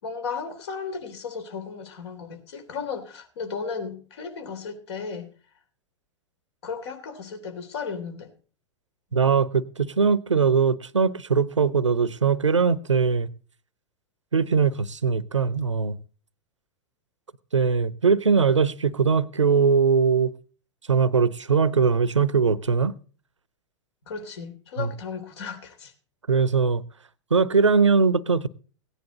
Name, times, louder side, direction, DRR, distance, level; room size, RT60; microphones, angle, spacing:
voice 1, 0.0-5.3 6.6-8.3 24.0-25.9, left 5 dB, 65° left, 3.3 m, -35 dB
voice 2, 9.1-13.3 14.3-16.0 17.5-20.3 20.9-22.9 24.8-24.9 26.3-26.8 27.3-28.5, right 5 dB, 90° right, 0.8 m, -21 dB
16.5 x 10.0 x 4.1 m
figure-of-eight pair, 100°, 15 cm